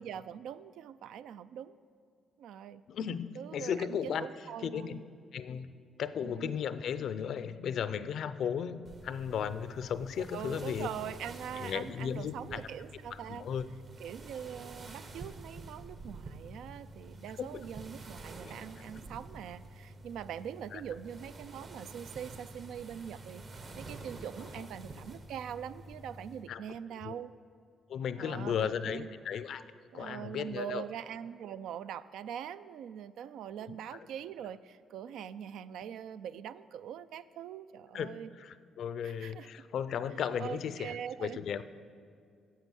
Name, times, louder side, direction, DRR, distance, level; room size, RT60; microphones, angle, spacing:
voice 1, 0.0-1.8 2.4-2.8 3.4-5.0 6.2-6.6 10.3-13.5 14.0-27.3 28.2-29.2 29.9-38.3 39.0-39.5 40.4-41.4, right 9 dB, 80° right, 14 dB, 0.3 m, -43 dB
voice 2, 2.9-4.3 4.6-5.0 5.3-5.7 6.0-10.9 11.6-12.6 13.1-13.7 17.4-17.5 18.4-18.5 20.7-20.8 24.6-24.7 26.5-26.6 27.0-27.2 27.9-29.6 29.9-30.8 33.7-34.1 37.9-38.1 38.4-41.6, left 8 dB, 70° left, 14 dB, 0.4 m, -35 dB
sound 1, 8.8-26.4, right 2 dB, 55° right, 1.1 m, -48 dB
10.5 x 7.5 x 6.3 m, 2.3 s
cardioid pair, 90°, 0 cm